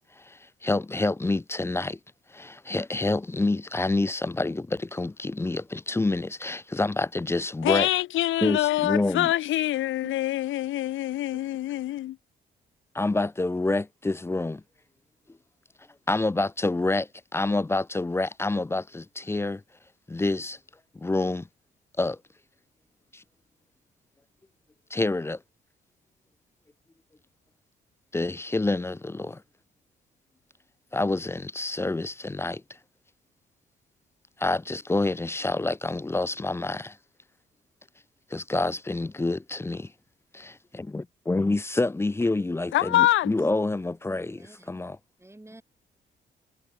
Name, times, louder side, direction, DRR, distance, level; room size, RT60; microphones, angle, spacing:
voice 1, 0.2-2.0 2.3-7.9 8.4-9.3 10.0-10.1 12.9-14.6 16.1-19.6 20.1-20.6 20.9-21.5 22.0-22.2 23.1-23.2 24.9-25.4 28.1-29.4 30.9-32.6 34.4-37.0 38.3-39.9 40.3-44.4 44.7-45.0, left 2 dB, 10° left, 0.4 m, -27 dB
voice 2, 7.6-12.2 42.7-43.3, left 14 dB, 70° left, 0.6 m, -25 dB
voice 3, 44.1-44.8 45.2-45.6, right 1 dB, 15° right, 8.0 m, -50 dB
supercardioid pair, 60°, 21 cm